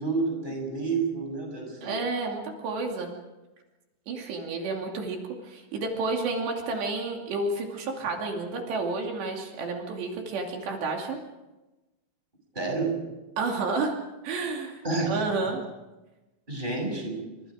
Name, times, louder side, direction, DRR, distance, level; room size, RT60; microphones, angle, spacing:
voice 1, 0.0-2.0 12.5-13.1 14.8-15.2 16.5-17.3, right 3 dB, 10° right, 1 dB, 6.9 m, -29 dB
voice 2, 1.8-3.1 4.1-5.2 5.4-11.2 13.4-14.0 14.2-14.8 15.1-15.6, right 3 dB, 70° right, 1 dB, 4.7 m, -30 dB
29.5 x 25.0 x 5.0 m, 1.1 s
omnidirectional pair, 5.2 m